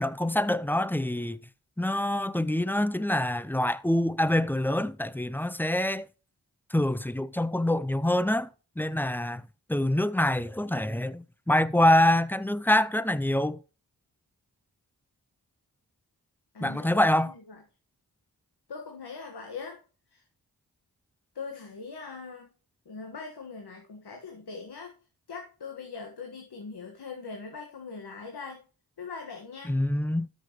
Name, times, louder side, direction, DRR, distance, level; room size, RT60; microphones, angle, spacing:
voice 1, 0.0-1.4 1.8-6.1 6.7-8.5 8.8-9.4 9.7-13.6 16.6-17.3 29.7-30.3, left 1 dB, 5° left, 0.5 m, -25 dB
voice 2, 16.5-17.6 18.7-19.8 20.1-20.2 21.3-22.5 22.8-24.9 25.3-28.6 29.0-29.8, left 4 dB, 75° left, 1.6 m, -41 dB
13.0 x 6.5 x 3.1 m
cardioid pair, 50°, 39 cm